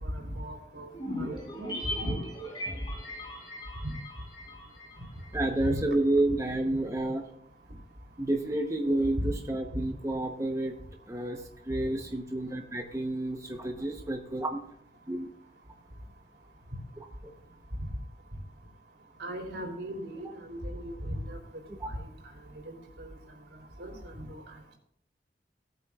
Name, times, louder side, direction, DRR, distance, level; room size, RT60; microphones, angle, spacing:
voice 1, 0.1-0.9 1.2-1.4 2.0-2.2 5.6-5.8 6.7-6.8 9.2-9.3 19.2-21.4 22.7-23.1 23.8-24.4, equal, 80° right, 1 dB, 3.2 m, -36 dB
sound 1, 0.9-5.4 5.7-5.8, equal, 25° left, 3.8 m, -38 dB
voice 2, 5.3-7.2 8.2-10.8 11.1-14.6 15.1-15.3 17.2-17.3, right 1 dB, 20° right, 2 dB, 0.9 m, -30 dB
18.0 x 8.9 x 2.4 m, 0.70 s
head